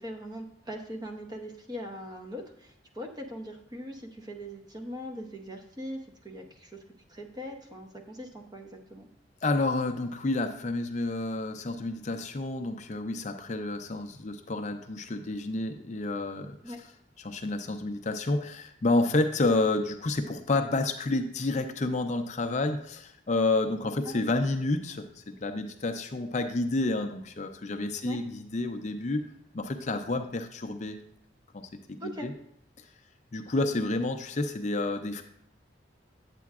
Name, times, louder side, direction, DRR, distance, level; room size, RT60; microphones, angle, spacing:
voice 1, 0.0-6.8 7.1-9.1 16.6-16.8 24.0-24.1 28.0-28.2 32.0-32.3, equal, 20° right, 3 dB, 0.7 m, -41 dB
voice 2, 9.4-16.8 17.2-29.3 29.5-31.0 31.5-32.3 32.8-32.9 33.3-35.2, left 2 dB, 40° left, 6 dB, 0.4 m, -30 dB
8.4 x 8.3 x 2.4 m, 0.72 s
head